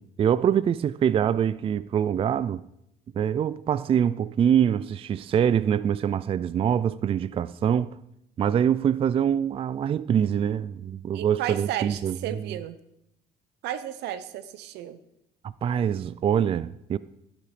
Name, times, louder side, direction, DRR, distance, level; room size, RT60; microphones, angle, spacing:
voice 1, 0.0-2.6 3.1-8.0 8.4-12.6 15.4-17.0, right 8 dB, 35° right, 0.3 m, -24 dB
voice 2, 11.1-12.8 13.6-15.0, right 11 dB, 85° right, 0.9 m, -33 dB
13.5 x 8.6 x 4.9 m
cardioid pair, 110°, 17 cm